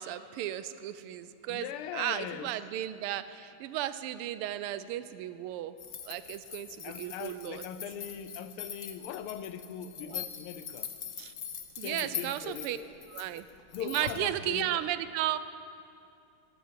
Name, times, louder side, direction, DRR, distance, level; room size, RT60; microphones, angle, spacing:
voice 1, 0.0-1.7 1.9-5.7 6.1-7.6 10.1-10.2 11.2-11.3 11.8-12.8 13.1-13.5 13.8-15.4, right 12 dB, 85° right, 14 dB, 1.5 m, -34 dB
voice 2, 1.5-2.5 6.8-10.9 11.8-12.9 13.7-14.9, left 9 dB, 80° left, 12 dB, 1.5 m, -40 dB
sound 1, 5.8-14.3, left 8 dB, 55° left, 0.8 m, -42 dB
12.0 x 11.0 x 7.4 m, 2.6 s
omnidirectional pair, 2.4 m